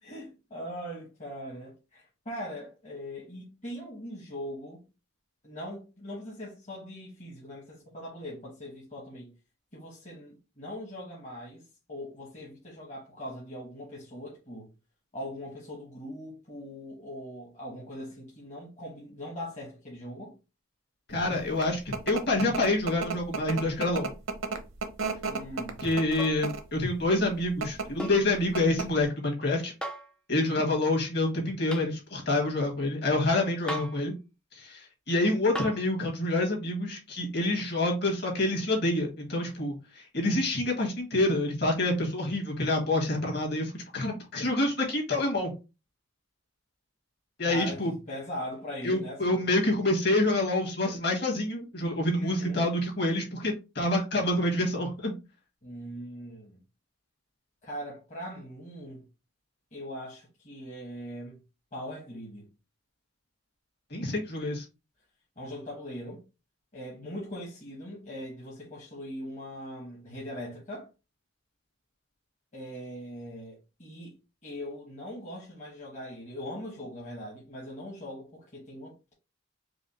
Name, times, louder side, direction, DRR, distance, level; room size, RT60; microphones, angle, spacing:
voice 1, 0.0-4.8 5.4-9.3 9.7-11.6 11.9-14.7 15.1-20.4 25.3-25.8 30.3-30.7 47.5-49.5 52.2-52.7 55.6-56.6 57.6-59.0 59.7-61.4 61.7-62.5 65.4-66.2 66.7-70.9 72.5-74.1 74.4-79.1, equal, 35° left, 1.1 m, -41 dB
voice 2, 21.1-21.8 22.1-24.1 25.8-29.7 30.3-34.1 34.6-45.5 47.4-47.9 48.8-55.1 63.9-64.7, left 2 dB, 50° left, 1.8 m, -27 dB
sound 1, 21.3-26.7 27.5-27.9 28.2-28.3 28.5-29.0, right 4 dB, 75° right, 0.7 m, -33 dB
sound 2, 26.2-26.5 28.0-28.3 29.8-30.1 31.7-31.9 33.7-34.0 35.5-35.9 37.6-37.7, right 1 dB, 5° left, 0.3 m, -36 dB
4.9 x 2.2 x 4.1 m
head